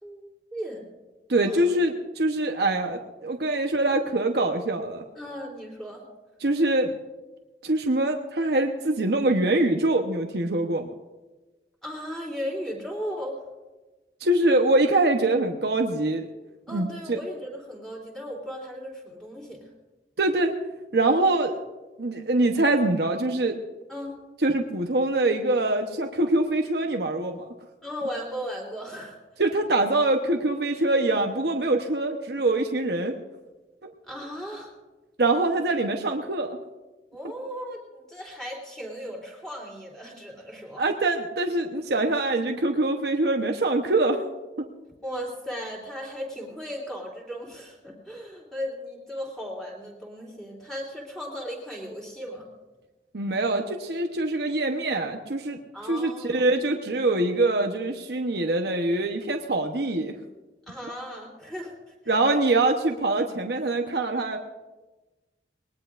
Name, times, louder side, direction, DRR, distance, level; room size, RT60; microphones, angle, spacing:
voice 1, 0.0-0.9 1.5-1.7 5.1-6.0 11.8-13.4 16.7-19.7 23.9-24.2 27.8-29.2 34.0-34.7 37.1-40.8 45.0-52.5 55.7-56.4 60.7-61.9, equal, 5° left, -2 dB, 3.2 m, -36 dB
voice 2, 1.3-5.0 6.4-6.9 7.6-10.9 14.2-16.3 16.7-17.2 20.2-20.5 20.9-21.6 22.0-23.6 24.4-27.5 29.4-33.2 33.8-33.9 35.2-36.6 40.8-44.2 44.6-44.7 53.1-55.6 55.9-60.2 62.1-64.4, right 2 dB, 65° right, 4 dB, 0.9 m, -24 dB
20.5 x 19.5 x 2.5 m, 1.1 s
head